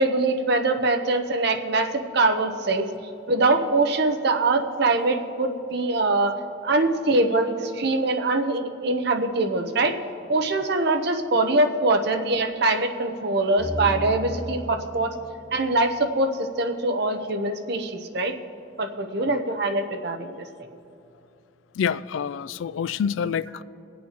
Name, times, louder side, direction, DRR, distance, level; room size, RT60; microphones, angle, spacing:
voice 1, 0.0-2.9 3.3-6.3 6.6-10.0 10.3-15.1 15.5-18.3 18.8-20.5, right 2 dB, 60° right, 5 dB, 0.8 m, -23 dB
sound 1, 13.6-16.5, left 1 dB, 30° right, 2.5 m, -35 dB
voice 2, 21.8-23.6, left 7 dB, 85° left, 18 dB, 0.3 m, -27 dB
24.0 x 8.5 x 2.9 m, 2.6 s
head